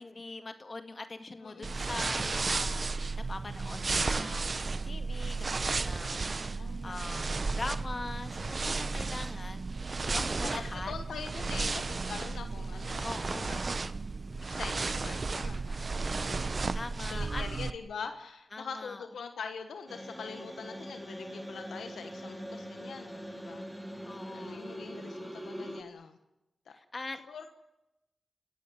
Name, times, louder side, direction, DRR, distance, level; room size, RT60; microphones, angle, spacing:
voice 1, 0.0-7.3 7.5-10.9 13.0-13.7 16.1-17.4 18.5-19.1 24.0-24.7 26.7-27.2, left 3 dB, 45° left, 7 dB, 2.1 m, -42 dB
sound 1, 1.6-17.7, right 3 dB, 55° right, 1.0 m, -33 dB
voice 2, 6.6-7.0 10.5-13.7 14.4-16.6 17.1-23.8 24.3-26.2 26.7-26.8 27.3-27.6, left 6 dB, 90° left, 7 dB, 1.2 m, -44 dB
sound 2, 19.9-25.8, equal, 5° right, 2.8 m, -42 dB
28.5 x 15.0 x 9.3 m, 0.97 s
cardioid pair, 45°, 0 cm